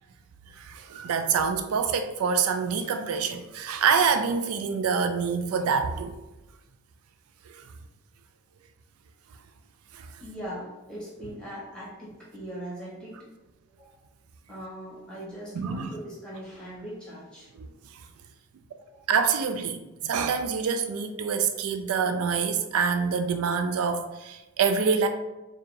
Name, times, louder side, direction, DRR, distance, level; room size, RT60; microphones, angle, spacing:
voice 1, 0.5-6.1 7.5-7.6 9.9-10.1 15.5-15.9 17.6-18.0 19.1-25.1, right 6 dB, 80° right, 7 dB, 0.3 m, -26 dB
voice 2, 10.2-13.3 13.7-14.0 14.5-17.5 18.9-19.1, equal, 5° left, -6 dB, 1.3 m, -40 dB
4.7 x 2.3 x 3.1 m, 1.1 s
head